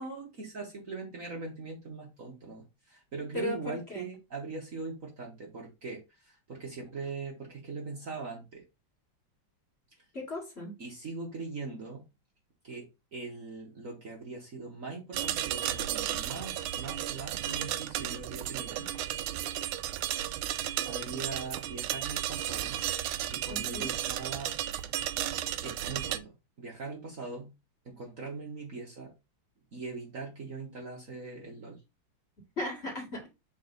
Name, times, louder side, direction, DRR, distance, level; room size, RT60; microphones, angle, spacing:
voice 1, 0.0-8.6 10.8-12.0 12.6-18.9 20.5-22.8 23.3-24.6 25.6-27.5 27.8-29.1 29.7-31.8, right 4 dB, 40° right, 1.7 m, -41 dB
voice 2, 3.3-4.0 10.1-10.7 23.5-23.9 32.6-33.3, left 1 dB, 30° left, 2.3 m, -36 dB
sound 1, 15.1-26.2, right 12 dB, 85° right, 1.4 m, -34 dB
6.5 x 4.3 x 3.9 m
omnidirectional pair, 2.3 m